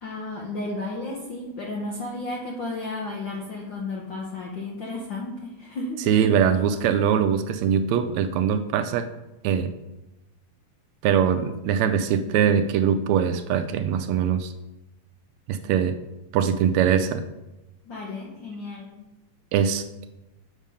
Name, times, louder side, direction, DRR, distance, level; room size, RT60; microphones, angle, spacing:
voice 1, 0.0-6.1 17.8-19.0, left 2 dB, 65° left, -2 dB, 1.2 m, -33 dB
voice 2, 6.1-9.1 9.4-9.7 11.0-14.5 15.5-16.0 16.3-17.2 19.5-19.8, right 8 dB, 80° right, 9 dB, 1.7 m, -22 dB
7.2 x 5.1 x 5.4 m, 0.98 s
omnidirectional pair, 3.3 m